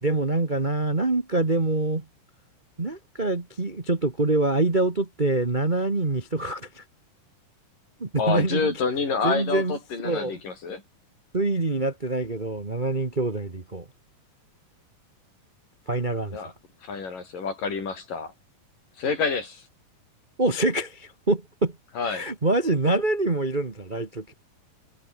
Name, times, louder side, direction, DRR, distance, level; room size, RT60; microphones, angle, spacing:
voice 1, 0.0-2.0 2.8-6.8 8.0-8.7 9.2-10.4 11.3-13.9 15.9-16.4 20.4-21.8 22.0-24.3, right 2 dB, 30° right, 0.8 m, -25 dB
voice 2, 8.2-10.8 16.3-16.5 16.8-18.3 19.0-19.6 22.0-22.3, left 5 dB, 65° left, 7.1 m, -28 dB
omnidirectional pair, 4.1 m